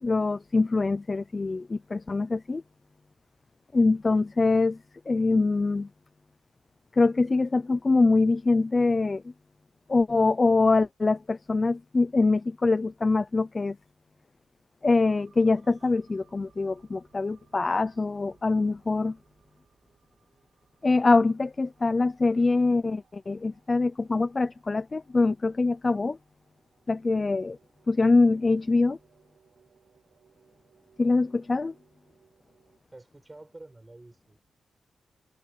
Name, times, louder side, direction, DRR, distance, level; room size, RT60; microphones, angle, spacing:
voice 1, 0.0-2.6 3.7-4.8 5.1-5.9 6.9-9.2 9.9-13.8 14.8-19.2 20.8-26.2 26.9-27.6 27.9-29.0 31.0-31.7, left 3 dB, 25° left, 0.5 m, -24 dB
sound 1, 15.0-32.8, right 7 dB, 60° right, 7.8 m, -65 dB
voice 2, 32.9-34.4, right 2 dB, 15° right, 7.8 m, -49 dB
wide cardioid pair, 130°, 0 cm